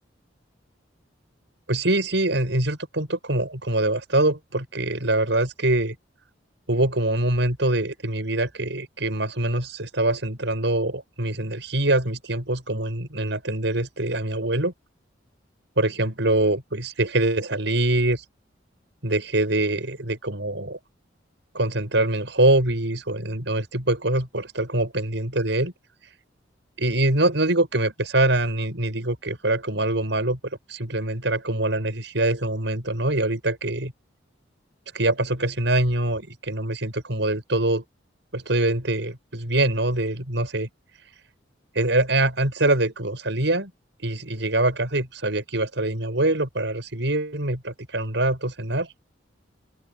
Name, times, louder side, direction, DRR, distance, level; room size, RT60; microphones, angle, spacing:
voice 1, 1.7-6.0 6.7-14.7 15.8-18.2 19.0-20.8 21.5-25.7 26.8-30.4 30.7-33.9 34.9-37.8 38.3-40.7 41.7-43.7 44.0-48.9, right 2 dB, 70° right, 6.0 m, -24 dB
open air
head